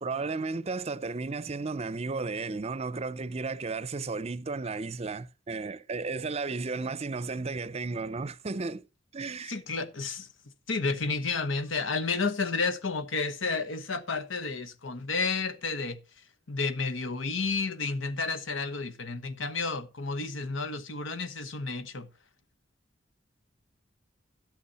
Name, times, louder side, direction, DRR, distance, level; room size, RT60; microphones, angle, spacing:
voice 1, 0.0-8.9 9.1-9.6, right 4 dB, 35° right, 0.5 m, -34 dB
voice 2, 9.5-10.3 10.7-16.0 16.5-22.1, left 4 dB, 90° left, 1.2 m, -31 dB
12.0 x 8.3 x 4.2 m
head